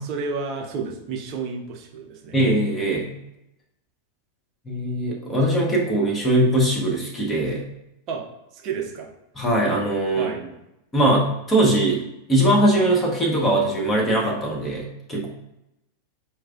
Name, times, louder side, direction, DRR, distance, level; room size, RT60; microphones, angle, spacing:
voice 1, 0.0-2.4 8.1-8.2 8.5-9.1 10.1-10.4, right 5 dB, 40° right, 1 dB, 0.6 m, -31 dB
voice 2, 2.3-3.1 4.7-7.6 9.4-10.3 10.9-12.0 12.3-15.3, right 1 dB, 15° left, -2 dB, 0.7 m, -21 dB
4.5 x 2.4 x 2.3 m, 0.89 s
figure-of-eight pair, 90°, 0 cm